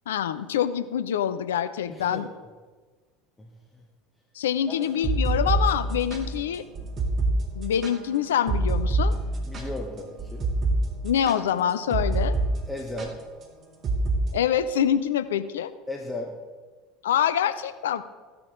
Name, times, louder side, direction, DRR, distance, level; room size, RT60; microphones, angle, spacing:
voice 1, 0.1-2.3 4.3-6.6 7.6-9.1 11.0-12.3 14.3-15.7 17.0-18.0, left 9 dB, 70° left, 12 dB, 0.6 m, -25 dB
voice 2, 1.9-2.3 3.4-3.8 4.7-4.8 9.4-10.5 12.7-13.2 15.9-16.3, left 1 dB, 10° left, 0 dB, 1.4 m, -36 dB
sound 1, 4.8-12.5 12.8-13.1 13.8-14.2, right 2 dB, 35° right, 2.0 m, -26 dB
15.0 x 9.8 x 3.7 m, 1.4 s
figure-of-eight pair, 70°, 0 cm